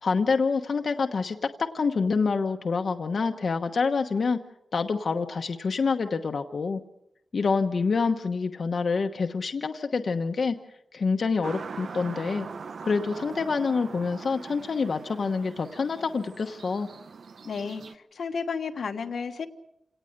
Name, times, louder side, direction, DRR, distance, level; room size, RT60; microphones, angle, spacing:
voice 1, 0.0-1.4 1.7-4.4 4.7-6.8 7.3-10.5 10.9-12.5 12.8-16.9, left 4 dB, 60° left, 5 dB, 1.1 m, -27 dB
sound 1, 11.4-17.9, right 5 dB, 70° right, 0.8 m, -41 dB
voice 2, 17.4-19.5, left 5 dB, 80° left, 6 dB, 1.4 m, -32 dB
27.5 x 18.0 x 6.6 m, 0.81 s
wide cardioid pair, 165°, 0 cm